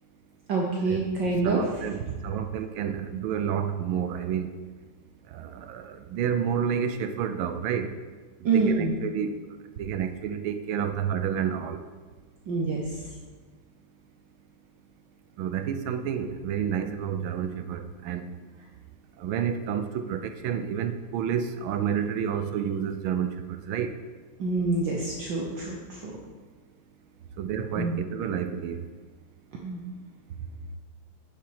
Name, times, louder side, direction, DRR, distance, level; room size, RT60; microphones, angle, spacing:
voice 1, 0.5-1.8 8.4-8.9 12.5-13.1 24.4-26.2 27.8-28.0 29.6-29.8, right 3 dB, 65° right, -2 dB, 1.6 m, -27 dB
voice 2, 1.4-4.5 5.3-7.9 8.4-9.4 9.8-11.8 15.4-18.2 19.2-23.9 27.4-28.8, right 8 dB, 80° right, 9 dB, 1.5 m, -30 dB
9.5 x 7.4 x 4.8 m, 1.4 s
omnidirectional pair, 2.3 m